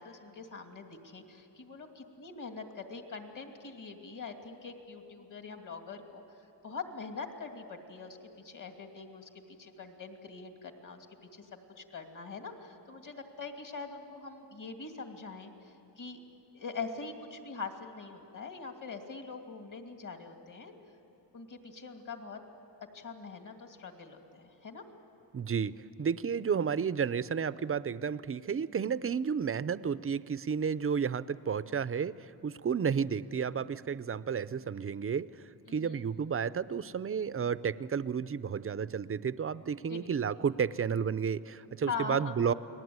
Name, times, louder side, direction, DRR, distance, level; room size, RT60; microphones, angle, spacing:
voice 1, 0.0-9.3 9.6-11.0 11.3-11.5 11.8-16.2 16.5-20.7 21.3-22.4 22.9-24.8 35.8-36.1 39.9-40.1 41.9-42.4, left 4 dB, 45° left, 5 dB, 2.6 m, -43 dB
voice 2, 25.3-35.3 35.7-42.5, right 7 dB, 30° right, 16 dB, 0.6 m, -32 dB
30.0 x 20.0 x 9.5 m, 2.8 s
wide cardioid pair, 115°, 42 cm